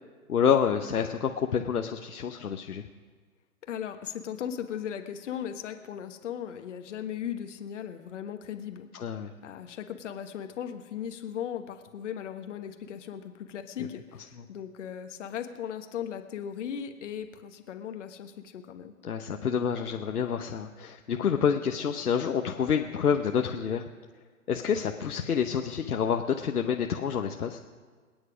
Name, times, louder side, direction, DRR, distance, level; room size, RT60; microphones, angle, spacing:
voice 1, 0.3-2.9 8.9-9.3 13.8-13.9 19.0-23.8 24.5-27.6, left 7 dB, 75° left, 4 dB, 1.0 m, -28 dB
voice 2, 3.6-8.9 9.4-18.9, left 9 dB, 50° left, 7 dB, 1.3 m, -37 dB
24.0 x 9.5 x 5.1 m, 1.6 s
figure-of-eight pair, 130°, 45 cm